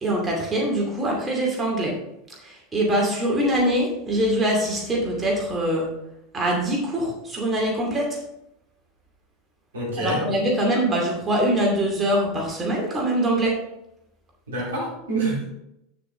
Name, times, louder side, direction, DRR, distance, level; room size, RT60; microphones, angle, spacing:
voice 1, 0.0-1.9 2.7-5.9 6.3-8.1 10.0-13.6, right 1 dB, 20° right, -1 dB, 2.4 m, -23 dB
voice 2, 9.7-10.3 14.5-15.5, right 2 dB, 75° right, -5 dB, 3.6 m, -27 dB
9.3 x 6.8 x 3.7 m, 0.83 s
figure-of-eight pair, 80°, 0 cm